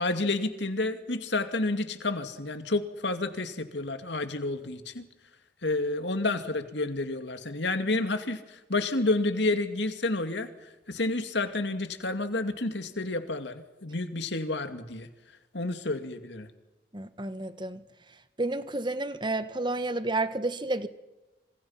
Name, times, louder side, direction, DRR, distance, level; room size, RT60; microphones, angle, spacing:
voice 1, 0.0-5.1 5.6-15.1 15.5-16.5, left 2 dB, 65° left, 8 dB, 2.4 m, -30 dB
voice 2, 16.9-17.8 18.4-20.9, right 2 dB, 25° right, 12 dB, 1.4 m, -30 dB
27.0 x 27.0 x 5.8 m, 1.1 s
head